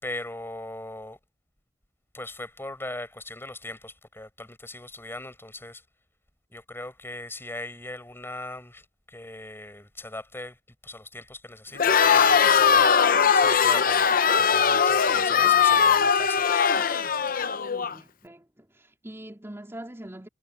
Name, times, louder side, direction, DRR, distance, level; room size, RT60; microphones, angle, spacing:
voice 1, 0.0-1.2 2.1-5.8 6.5-10.6 10.8-13.1 13.3-16.4, left 2 dB, 15° left, 6.1 m, -39 dB
Crowd, 11.7-17.9, left 7 dB, 50° left, 0.8 m, -20 dB
voice 2, 17.8-20.3, right 1 dB, 15° right, 3.2 m, -43 dB
head